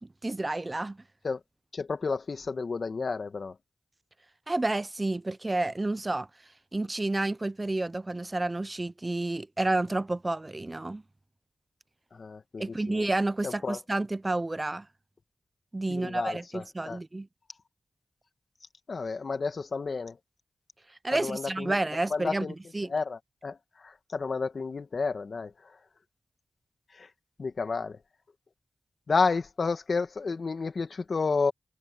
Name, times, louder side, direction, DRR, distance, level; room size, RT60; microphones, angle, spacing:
voice 1, 0.2-1.0 4.5-6.3 6.7-11.0 12.6-14.9 15.7-17.3 21.0-22.5 22.7-22.9, right 2 dB, 30° right, 0.6 m, -30 dB
voice 2, 1.7-3.6 12.1-13.1 13.4-13.8 15.9-17.0 18.9-20.2 21.1-21.8 22.1-22.6 22.8-25.8 26.9-27.1 27.4-28.0 29.1-31.5, left 4 dB, 60° left, 1.9 m, -31 dB
cardioid pair, 60°, 0 cm